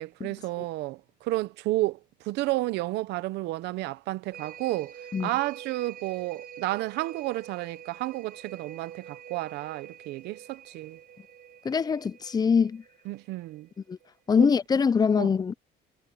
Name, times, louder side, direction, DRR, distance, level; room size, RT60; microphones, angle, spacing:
voice 1, 0.0-4.9 5.2-11.0 13.1-13.7 14.4-14.5 15.2-15.3, right 18 dB, 85° right, 0.9 m, -31 dB
sound 1, 4.3-14.1 14.5-14.6, right 9 dB, 60° right, 4.3 m, -47 dB
voice 2, 11.6-12.8 13.9-14.0 14.3-15.5, left 6 dB, 25° left, 0.5 m, -23 dB
cardioid pair, 110°, 17 cm